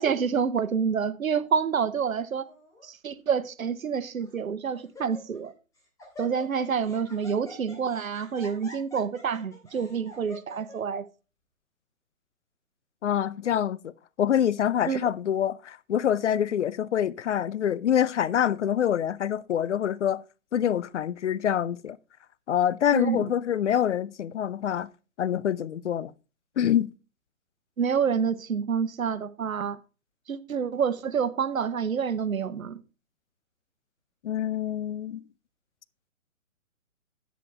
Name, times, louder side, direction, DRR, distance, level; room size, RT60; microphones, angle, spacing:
voice 1, 0.0-2.5 2.8-5.5 6.2-11.1 14.9-15.0 22.9-23.3 27.8-29.8 30.3-32.8, right 6 dB, 85° right, 1.0 m, -28 dB
Laughter, 2.4-2.8 3.6-3.7 4.2-4.5 4.7-5.5 5.8-10.8, left 1 dB, 10° left, 3.5 m, -46 dB
voice 2, 13.0-13.9 14.2-20.2 20.5-22.0 22.5-24.9 25.2-26.1 26.6-26.9 34.2-35.2, left 9 dB, 60° left, 0.6 m, -26 dB
10.0 x 9.2 x 3.3 m
hypercardioid pair, 145°, 40 cm